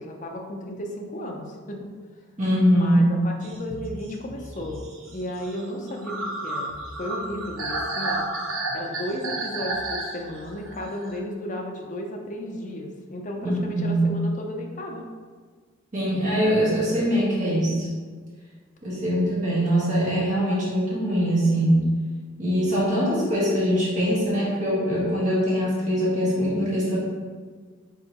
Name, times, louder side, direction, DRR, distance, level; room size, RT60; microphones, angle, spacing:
voice 1, 0.0-1.9 2.7-4.8 5.1-8.3 8.7-15.0, equal, 40° left, 1 dB, 0.5 m, -34 dB
voice 2, 2.4-3.1 13.4-14.0 15.9-17.9 18.8-21.9 22.4-27.0, equal, 35° right, -8 dB, 1.3 m, -22 dB
sound 1, 3.4-11.2, right 2 dB, 90° right, 0.9 m, -32 dB
4.8 x 3.7 x 2.9 m, 1.6 s
head